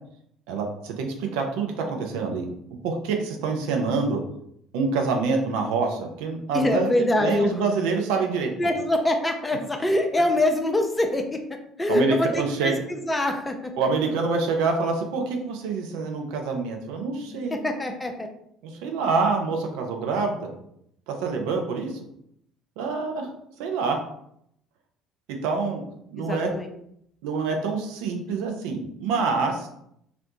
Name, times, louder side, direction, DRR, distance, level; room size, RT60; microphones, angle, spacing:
voice 1, 0.5-2.5 2.8-4.2 4.7-6.9 7.2-8.5 11.9-12.8 13.8-17.6 18.6-20.5 21.1-21.9 22.8-23.3 23.6-24.0 25.4-25.8 26.1-26.5 27.2-29.7, right 4 dB, 60° right, 3 dB, 0.4 m, -26 dB
voice 2, 6.5-7.6 8.6-13.9 17.3-18.3 26.2-26.7, left 1 dB, 15° left, 4 dB, 0.4 m, -25 dB
2.5 x 2.0 x 2.9 m, 0.73 s
figure-of-eight pair, 55°, 0 cm